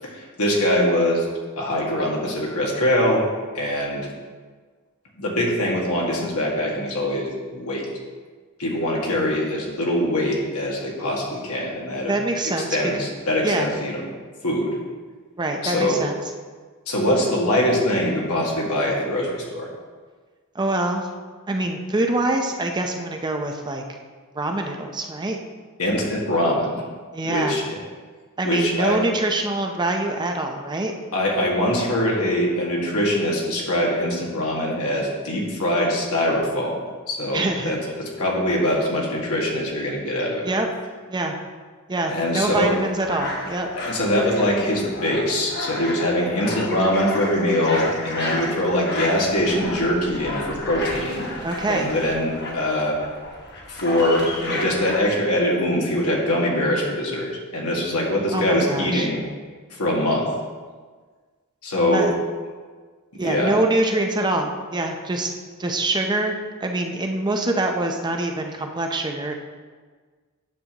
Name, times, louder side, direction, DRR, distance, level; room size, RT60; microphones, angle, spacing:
voice 1, 0.0-1.3 1.6-3.3 3.5-4.1 5.2-7.9 8.6-12.1 12.7-14.0 14.4-14.8 15.6-16.0 16.9-19.7 25.8-26.8 27.2-27.8 28.4-29.0 31.1-40.5 42.1-42.8 43.8-51.3 51.7-53.0 53.7-59.2 59.7-60.3 61.6-62.1 63.2-63.6, left 1 dB, 85° left, -2 dB, 1.8 m, -23 dB
voice 2, 12.1-12.7 13.4-13.7 15.4-16.2 20.5-21.1 21.5-23.8 24.3-25.4 27.1-27.6 28.4-30.9 37.3-37.7 40.4-40.7 41.1-41.4 41.9-43.7 51.4-51.9 58.3-59.1 61.9-62.2 63.1-65.3 65.6-66.3 66.6-69.3, right 2 dB, 20° right, 3 dB, 0.6 m, -24 dB
sound 1, 42.4-55.0, left 1 dB, 50° left, 1.2 m, -32 dB
9.4 x 6.8 x 2.9 m, 1.5 s
head